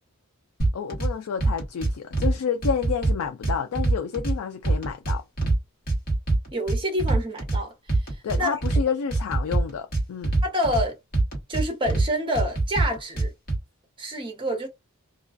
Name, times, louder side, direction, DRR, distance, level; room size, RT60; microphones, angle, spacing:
sound 1, 0.6-1.1 1.4-2.3 2.6-4.3 4.6-5.6 5.9-7.6 7.9-8.8 9.1-10.8 11.1-12.1 12.3-13.6, right 2 dB, 45° left, 1.3 m, -23 dB
voice 1, 0.7-5.2 8.2-10.3, left 6 dB, 70° left, 0.4 m, -29 dB
voice 2, 6.5-7.7 8.4-8.5 10.4-10.9 11.5-13.3 14.0-14.7, equal, 25° right, 0.9 m, -27 dB
2.3 x 2.2 x 2.4 m
head